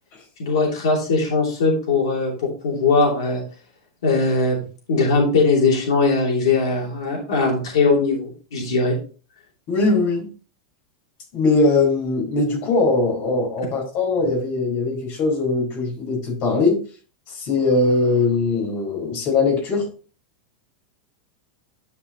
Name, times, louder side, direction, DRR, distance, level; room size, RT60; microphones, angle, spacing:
voice 1, 0.4-3.4 4.0-4.6 4.9-8.9, left 3 dB, 85° left, -2 dB, 3.0 m, -20 dB
voice 2, 9.7-10.3 11.3-16.8 17.3-19.8, left 3 dB, 40° left, -1 dB, 4.6 m, -20 dB
11.0 x 5.4 x 3.0 m, 0.38 s
supercardioid pair, 170°, 3 cm